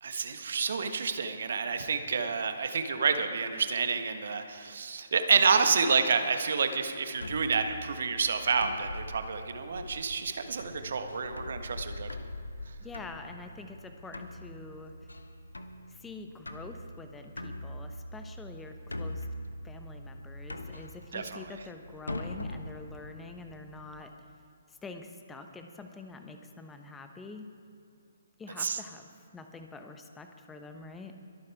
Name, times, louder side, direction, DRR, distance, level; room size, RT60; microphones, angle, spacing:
voice 1, 0.0-12.1 21.1-21.4 28.6-28.8, right 5 dB, 60° right, 7 dB, 1.4 m, -29 dB
sound 1, 7.2-24.0, left 1 dB, 85° left, 1.0 m, -42 dB
voice 2, 12.8-14.9 15.9-19.3 19.6-24.1 24.7-27.5 28.4-29.1 29.3-31.2, left 3 dB, 10° left, 5 dB, 1.1 m, -46 dB
23.0 x 8.7 x 4.7 m, 2.6 s
figure-of-eight pair, 135°, 0 cm